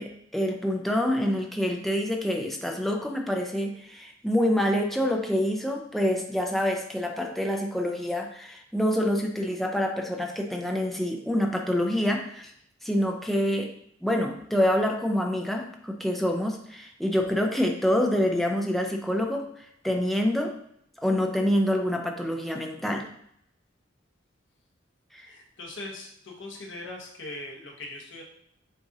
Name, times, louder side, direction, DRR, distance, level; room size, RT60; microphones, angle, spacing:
voice 1, 0.0-12.5 12.8-13.7 14.0-20.5 21.0-23.1 25.1-25.3, equal, ahead, 1 dB, 0.5 m, -26 dB
voice 2, 25.2-28.2, left 2 dB, 70° left, 0 dB, 1.1 m, -40 dB
7.7 x 2.6 x 2.7 m, 0.70 s
head